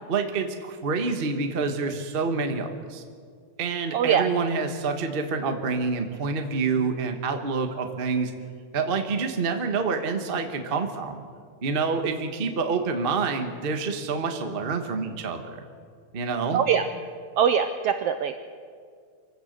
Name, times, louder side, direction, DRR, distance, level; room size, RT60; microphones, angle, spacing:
voice 1, 0.1-3.0 3.6-8.3 8.7-11.2 11.6-15.6 16.1-16.6, right 4 dB, 50° right, 6 dB, 0.6 m, -27 dB
voice 2, 3.9-4.2 16.5-16.8 17.4-18.4, right 8 dB, 75° right, 8 dB, 1.4 m, -22 dB
24.5 x 16.0 x 6.7 m, 2.1 s
omnidirectional pair, 3.5 m